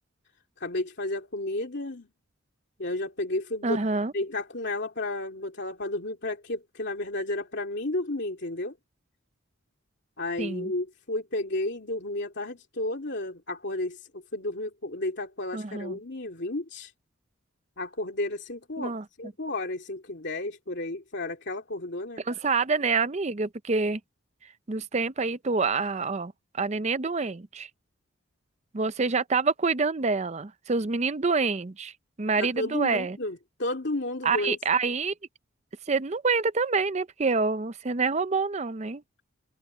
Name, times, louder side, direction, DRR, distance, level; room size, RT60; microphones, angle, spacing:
voice 1, 0.6-2.1 2.8-3.8 4.1-8.7 10.2-16.9 17.8-22.2 32.4-34.6, left 2 dB, 55° left, 2.9 m, -32 dB
voice 2, 3.6-4.1 10.4-10.7 15.5-16.0 18.8-19.0 22.2-24.0 24.7-27.7 28.7-31.9 32.2-33.2 34.2-35.1 35.9-39.0, right 4 dB, 35° right, 0.6 m, -27 dB
head